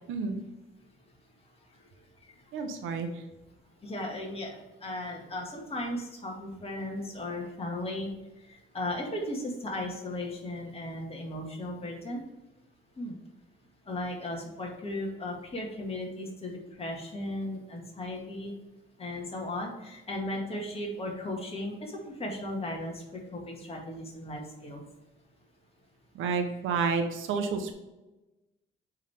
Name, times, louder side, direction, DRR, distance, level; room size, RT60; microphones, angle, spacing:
voice 1, 2.5-3.1 26.1-27.7, right 5 dB, 90° right, 6 dB, 1.1 m, -30 dB
voice 2, 3.8-8.1 8.5-12.2 13.0-13.2 13.9-18.5 19.0-24.8, left 1 dB, 30° left, -1 dB, 1.9 m, -36 dB
9.0 x 3.7 x 3.5 m, 1.0 s
cardioid pair, 90°, 20 cm